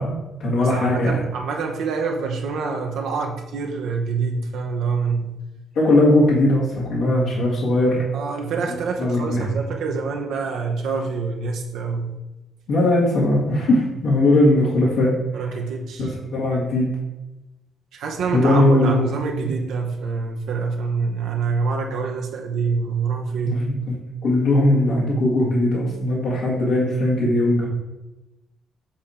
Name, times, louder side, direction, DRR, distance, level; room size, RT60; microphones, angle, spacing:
voice 1, 0.0-1.3 5.8-8.0 9.0-9.5 12.7-15.1 16.0-16.9 18.3-19.1 23.4-24.0 24.2-27.7, left 1 dB, 80° left, -5 dB, 1.8 m, -19 dB
voice 2, 0.5-5.4 8.1-12.1 15.3-16.1 17.9-23.6, right 4 dB, 80° right, 2 dB, 0.9 m, -26 dB
7.3 x 3.7 x 4.3 m, 1.0 s
cardioid pair, 90°, 0 cm